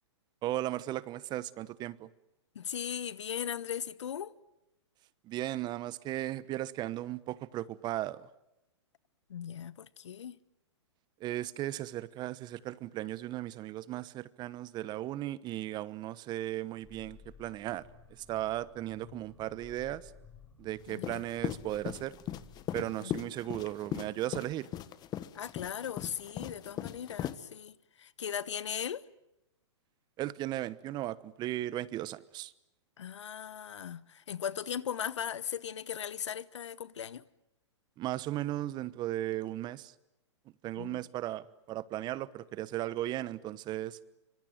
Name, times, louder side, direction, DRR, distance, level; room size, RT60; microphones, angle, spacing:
voice 1, 0.4-2.1 5.2-8.3 11.2-20.1 20.6-22.2 22.7-24.7 30.2-32.5 38.0-39.9 40.6-44.0, right 14 dB, 30° right, 1.1 m, -36 dB
voice 2, 2.5-4.3 9.3-10.4 20.9-21.2 23.0-23.1 25.3-29.1 33.0-37.2 40.8-41.0, left 9 dB, 75° left, 1.2 m, -38 dB
sound 1, 16.8-22.6, left 5 dB, 5° left, 7.9 m, -56 dB
sound 2, 20.9-27.4, left 12 dB, 25° left, 1.4 m, -38 dB
25.5 x 25.0 x 9.3 m
hypercardioid pair, 125°, 15 cm